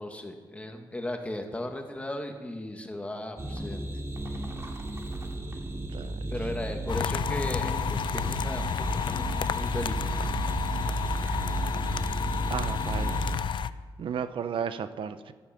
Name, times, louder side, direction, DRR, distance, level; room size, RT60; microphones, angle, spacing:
voice 1, 0.0-3.9 6.3-10.2, left 1 dB, 15° left, 4 dB, 2.0 m, -36 dB
sound 1, 3.4-13.4, right 2 dB, 30° right, 2.5 m, -33 dB
sound 2, 6.9-13.7, left 8 dB, 70° left, 0.5 m, -31 dB
voice 2, 12.5-13.2 14.0-15.3, right 7 dB, 80° right, 11 dB, 0.8 m, -33 dB
14.5 x 13.0 x 6.0 m, 1.4 s
wide cardioid pair, 105°, 9 cm